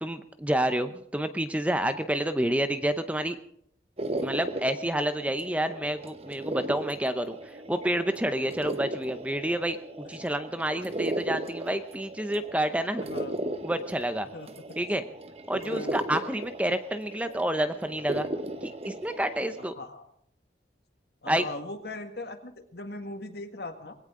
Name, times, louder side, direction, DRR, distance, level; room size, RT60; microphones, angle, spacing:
voice 1, 0.0-3.4 4.2-13.0 13.6-14.3 14.8-15.0 15.5-18.3 18.6-19.7 21.3-21.5, right 1 dB, 10° right, 9 dB, 0.7 m, -29 dB
sound 1, 4.0-19.7, right 1 dB, 35° right, 1.0 m, -36 dB
voice 2, 15.6-16.0 19.6-20.1 21.2-24.0, left 2 dB, 70° left, 6 dB, 1.8 m, -39 dB
20.5 x 17.0 x 3.8 m, 0.70 s
head